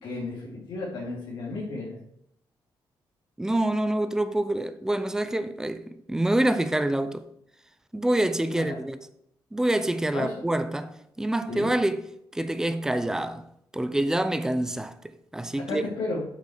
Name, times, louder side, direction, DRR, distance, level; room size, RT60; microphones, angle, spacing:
voice 1, 0.0-2.0 8.5-8.8 10.1-10.3 11.5-11.7 15.7-16.2, left 2 dB, 90° left, 3.0 m, -33 dB
voice 2, 3.4-7.2 7.9-9.0 9.5-12.1 12.3-13.4 13.7-14.9 15.3-15.8, right 1 dB, 5° right, 0.7 m, -26 dB
8.3 x 6.6 x 5.1 m
cardioid pair, 145°, 8 cm